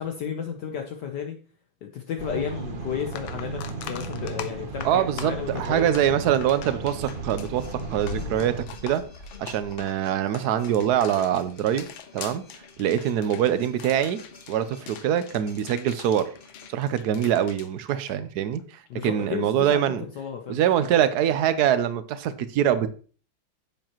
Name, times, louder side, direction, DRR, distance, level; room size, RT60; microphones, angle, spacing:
voice 1, 0.0-1.4 1.8-5.9 18.9-20.6, left 8 dB, 65° left, 4 dB, 1.3 m, -33 dB
sound 1, 2.2-8.6, right 4 dB, 35° right, 0.8 m, -35 dB
sound 2, 2.5-2.6 3.0-18.6 18.9-19.1 21.6-21.7, left 9 dB, 80° left, 1.5 m, -43 dB
voice 2, 4.8-7.6 7.9-8.6 8.8-9.0 9.4-11.9 12.1-12.5 12.8-16.3 16.7-20.0 20.5-22.9, right 10 dB, 65° right, 13 dB, 1.1 m, -24 dB
sound 3, 6.7-16.7, left 3 dB, 30° left, 1.2 m, -45 dB
9.8 x 7.4 x 3.0 m, 0.39 s
omnidirectional pair, 2.2 m